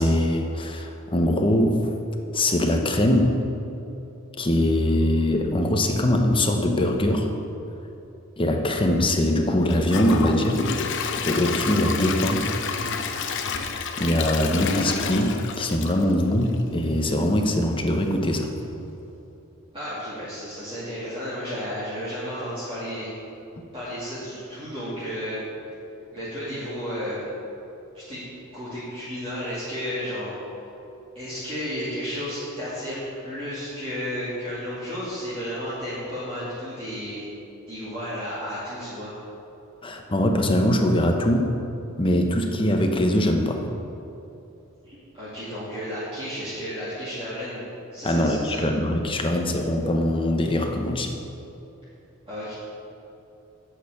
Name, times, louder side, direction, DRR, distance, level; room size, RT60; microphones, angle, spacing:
voice 1, 0.0-1.9 2.3-3.4 4.4-7.3 8.4-10.6 11.2-12.5 14.0-18.5 39.8-41.6 42.0-43.6 48.0-51.1, left 1 dB, 25° left, 3 dB, 0.9 m, -22 dB
Gurgling / Toilet flush / Trickle dribble, 9.7-16.7 17.1-17.2 17.7-17.8, left 5 dB, 60° left, 0.7 m, -29 dB
voice 2, 19.7-23.1 23.7-25.4 26.1-27.3 27.9-28.2 28.5-30.3 31.1-33.0 33.2-37.2 37.7-39.1 44.8-47.6 47.9-48.7 52.3-52.5, equal, 25° right, -12 dB, 2.6 m, -32 dB
8.1 x 6.6 x 7.9 m, 2.8 s
head